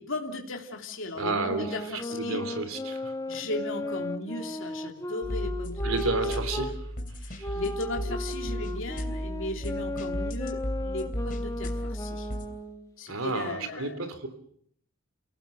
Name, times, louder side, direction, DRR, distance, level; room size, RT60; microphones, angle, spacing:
voice 1, 0.0-2.4 3.3-5.8 7.2-12.3 13.0-14.0, left 2 dB, 60° left, 2 dB, 3.2 m, -36 dB
sound 1, 1.2-6.8 7.4-12.9, left 1 dB, 15° left, 1.7 m, -36 dB
voice 2, 1.2-3.1 5.8-6.8 7.3-7.6 13.1-14.3, right 3 dB, 70° right, 10 dB, 3.4 m, -31 dB
sound 2, 5.2-12.5, equal, 40° left, 3.2 m, -35 dB
29.5 x 17.5 x 8.0 m, 0.67 s
head